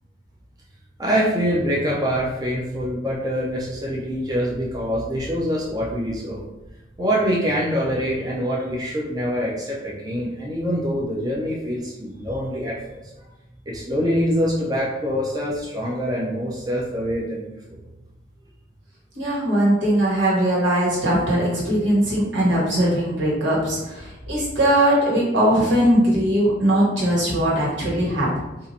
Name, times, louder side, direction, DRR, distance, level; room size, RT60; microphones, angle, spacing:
voice 1, 1.0-6.4 7.0-13.0 13.7-17.5, equal, 20° right, -5 dB, 0.5 m, -24 dB
voice 2, 19.1-28.3, right 1 dB, 85° right, -6 dB, 1.4 m, -20 dB
2.8 x 2.5 x 4.0 m, 1.0 s
head